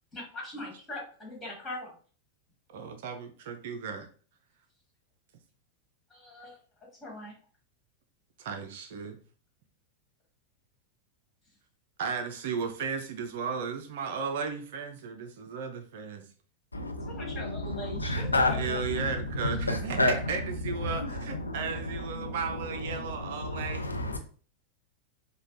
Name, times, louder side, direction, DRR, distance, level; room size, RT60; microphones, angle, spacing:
voice 1, 0.1-1.9 6.1-6.6 7.0-7.3 17.1-18.8, left 1 dB, 15° left, 1.8 m, -41 dB
voice 2, 2.7-4.1 8.4-9.2 12.0-16.2 18.5-23.9, right 5 dB, 55° right, 0.5 m, -35 dB
voice 3, 16.7-24.2, left 1 dB, 80° left, 0.5 m, -31 dB
5.0 x 2.2 x 2.7 m
figure-of-eight pair, 90°, 0 cm